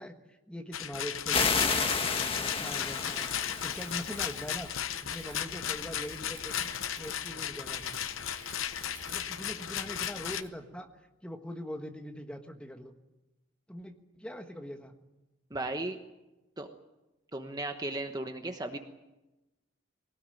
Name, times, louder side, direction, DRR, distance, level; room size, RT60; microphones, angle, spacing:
voice 1, 0.0-2.0 2.3-4.7 5.0-6.7 7.0-8.0 9.0-12.9 13.7-14.9, equal, 5° left, 5 dB, 1.4 m, -42 dB
Rattle, 0.7-10.4, left 10 dB, 85° left, 0.8 m, -35 dB
sound 1, 1.3-4.6, left 5 dB, 30° left, 1.4 m, -31 dB
Wind, 1.6-10.5, right 4 dB, 65° right, 3.0 m, -52 dB
voice 2, 15.5-16.0 16.6-16.7 17.3-18.8, right 2 dB, 20° right, 6 dB, 1.1 m, -35 dB
22.0 x 18.5 x 9.1 m, 1.0 s
head